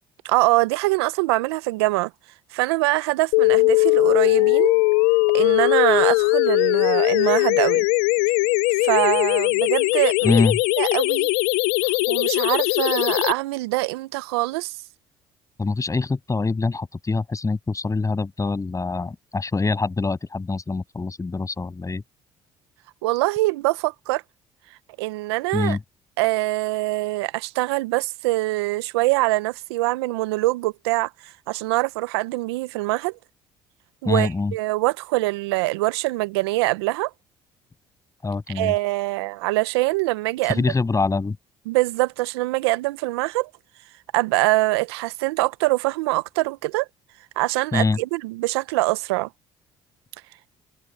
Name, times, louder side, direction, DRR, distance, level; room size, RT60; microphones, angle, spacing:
voice 1, 0.2-2.1 2.5-4.7 5.3-7.9 8.8-10.3 10.8-11.3 12.1-14.8 23.0-24.2 25.0-25.8 26.2-31.1 31.5-33.1 34.0-37.1 38.6-40.6 41.7-43.5 44.1-46.9 47.4-49.3, right 20 dB, 85° right, 0.7 m, -23 dB
sound 1, 3.3-13.3, left 27 dB, 80° left, 0.5 m, -20 dB
voice 2, 10.2-10.6 15.6-22.0 25.5-25.8 34.0-34.5 38.2-38.7 40.5-41.4 47.7-48.0, left 3 dB, 25° left, 7.8 m, -24 dB
hypercardioid pair, 65°, 13 cm